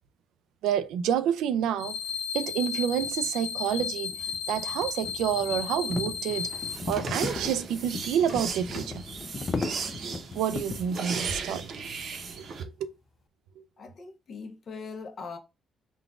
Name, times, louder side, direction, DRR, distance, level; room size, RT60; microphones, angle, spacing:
voice 1, 0.6-2.0 2.3-4.1 4.5-6.5 6.9-9.0 10.3-11.6 12.4-12.9, right 9 dB, 90° right, 0.4 m, -28 dB
sound 1, 1.8-6.8, left 7 dB, 85° left, 0.6 m, -34 dB
sound 2, 2.1-2.2 2.9-11.0, left 4 dB, 35° left, 0.5 m, -37 dB
sound 3, 6.3-12.6, right 5 dB, 60° right, 0.8 m, -36 dB
voice 2, 13.8-15.4, left 4 dB, 50° left, 1.0 m, -41 dB
3.8 x 2.4 x 3.5 m
cardioid pair, 90°, 0 cm